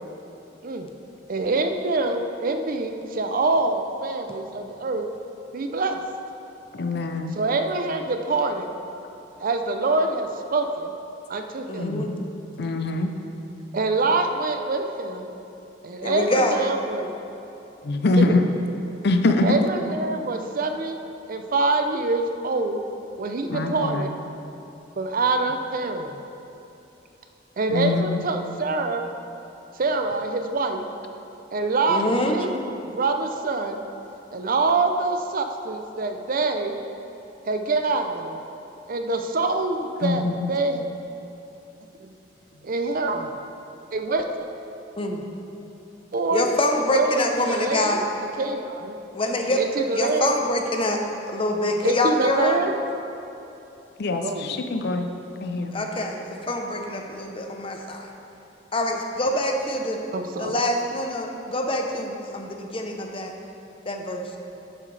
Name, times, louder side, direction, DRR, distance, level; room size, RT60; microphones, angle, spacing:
voice 1, 1.3-5.1 5.5-6.0 7.3-8.7 9.4-10.9 11.3-11.9 13.7-15.3 15.8-17.1 18.2-18.4 19.4-21.0 21.3-22.8 23.2-24.1 25.0-26.2 27.6-29.0 29.8-30.9 31.5-32.5 32.8-33.8 34.3-36.8 37.5-38.4 38.9-40.8 42.0-42.1 42.6-43.4 43.9-44.3 46.1-46.5 46.9-49.0 49.5-50.3 51.8-52.7 54.2-54.5 60.1-60.6, right 3 dB, 50° right, 6 dB, 0.5 m, -25 dB
voice 2, 6.7-7.3 11.8-12.2 12.6-13.1 17.8-18.5 19.0-19.6 23.5-24.0 27.7-28.2 40.0-40.4 54.0-55.1 55.4-55.9, left 2 dB, 60° left, 6 dB, 0.6 m, -23 dB
voice 3, 11.7-12.1 16.0-16.6 31.9-32.4 45.0-45.2 46.3-48.1 49.1-49.6 49.9-51.0 51.3-52.6 55.7-58.1 58.7-60.0 60.4-63.3 63.9-64.3, left 1 dB, 30° left, 3 dB, 0.8 m, -25 dB
11.0 x 7.4 x 3.3 m, 2.9 s
head